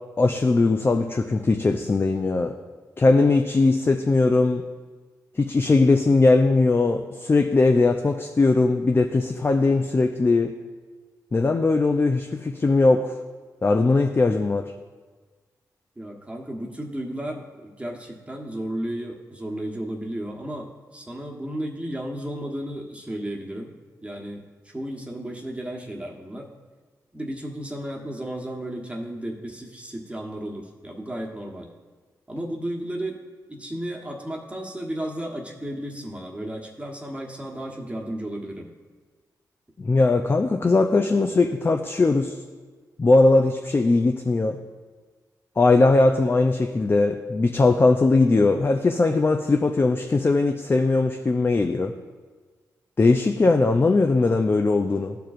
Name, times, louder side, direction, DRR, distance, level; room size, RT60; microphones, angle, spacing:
voice 1, 0.2-2.5 3.0-4.6 5.4-10.5 11.3-13.1 13.6-14.7 39.8-42.4 43.0-44.6 45.6-51.9 53.0-55.2, left 3 dB, 30° left, 4 dB, 0.4 m, -20 dB
voice 2, 16.0-23.7 24.0-26.5 27.1-31.7 32.3-33.2 33.5-38.7, right 1 dB, 15° right, 0 dB, 1.2 m, -33 dB
13.0 x 4.6 x 2.5 m, 1.4 s
cardioid pair, 55°, 7 cm